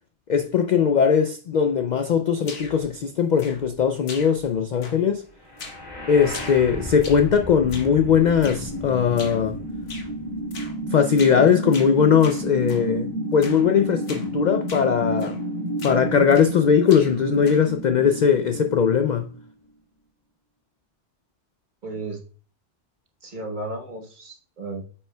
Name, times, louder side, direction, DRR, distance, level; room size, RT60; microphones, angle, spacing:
voice 1, 0.3-5.2 6.1-9.6 10.9-15.4 15.8-19.4, left 7 dB, 60° left, 0.5 m, -20 dB
sound 1, 2.4-2.9 3.4-3.8 4.1-4.5 4.8-5.2 5.6-5.9 6.3-7.3 7.7-8.0 8.4-8.7 9.2-9.5 9.9-10.1 10.5-10.8 11.2-11.4 11.7-12.9 13.4-13.7 14.0-14.3 14.7-14.9 15.2-15.5 15.8-16.6 16.9-17.8, left 3 dB, 85° left, 1.6 m, -41 dB
sound 2, 5.5-19.5, equal, 25° left, 2.5 m, -31 dB
voice 2, 21.8-22.2 23.2-24.8, right 2 dB, 45° right, 1.3 m, -34 dB
8.8 x 5.4 x 2.2 m
omnidirectional pair, 1.2 m